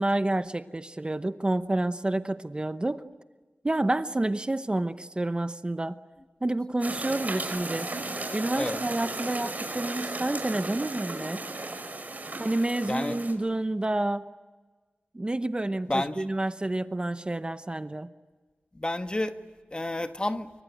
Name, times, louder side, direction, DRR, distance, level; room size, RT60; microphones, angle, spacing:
voice 1, 0.0-3.0 3.6-6.0 6.4-7.9 8.3-11.4 12.4-14.3 15.1-18.1, right 2 dB, 25° right, 11 dB, 0.9 m, -29 dB
sound 1, 6.8-13.3, right 2 dB, 45° right, 5.3 m, -35 dB
voice 2, 12.9-13.2 15.9-16.2 18.7-19.3 19.7-20.5, left 1 dB, 25° left, 8 dB, 1.5 m, -30 dB
25.5 x 24.0 x 9.2 m, 1.4 s
wide cardioid pair, 95°, 4 cm